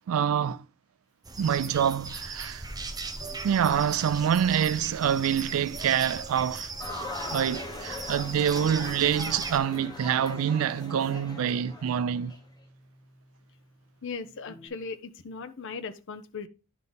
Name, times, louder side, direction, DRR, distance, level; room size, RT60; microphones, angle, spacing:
voice 1, 0.1-0.7 1.4-2.7 3.4-6.7 7.3-12.3, right 8 dB, 75° right, 0.3 m, -26 dB
sound 1, 1.2-9.6, right 3 dB, 20° right, 0.7 m, -38 dB
sound 2, 3.1-5.5 6.1-7.0 8.6-14.7, right 1 dB, 45° left, 3.2 m, -51 dB
sound 3, 6.8-12.4, left 2 dB, 20° left, 0.9 m, -40 dB
voice 2, 14.0-16.5, left 4 dB, 60° left, 0.7 m, -38 dB
10.5 x 3.7 x 3.9 m
head